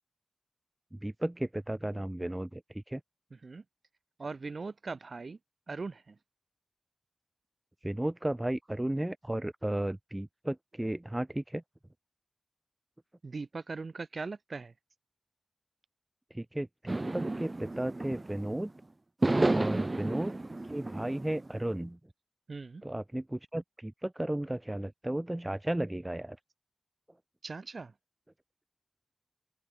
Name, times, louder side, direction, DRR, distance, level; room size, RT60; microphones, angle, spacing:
voice 1, 1.0-2.6 2.9-3.0 7.8-11.6 16.3-18.7 19.5-20.3 20.7-22.0 22.8-26.4, right 1 dB, 15° right, 1.0 m, -34 dB
voice 2, 3.3-3.6 4.2-5.4 5.7-6.2 13.2-14.7 22.5-22.8 27.4-27.9, right 4 dB, 65° right, 3.7 m, -40 dB
sound 1, 16.9-18.6 19.2-21.5, right 2 dB, 35° right, 0.3 m, -31 dB
open air
wide cardioid pair, 85°, 0 cm